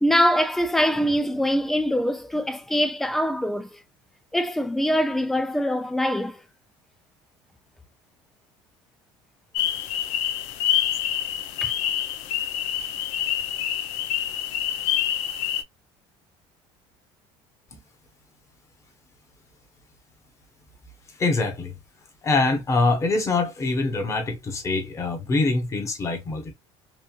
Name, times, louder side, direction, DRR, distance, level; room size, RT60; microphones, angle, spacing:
voice 1, 0.0-3.7 4.3-6.4 11.6-11.7, equal, ahead, 0.4 m, -23 dB
sound 1, 9.5-15.6, left 11 dB, 75° left, 0.5 m, -26 dB
voice 2, 21.2-21.7 22.2-26.5, left 3 dB, 25° left, 0.9 m, -24 dB
3.1 x 2.5 x 2.3 m
cardioid pair, 135°, 12 cm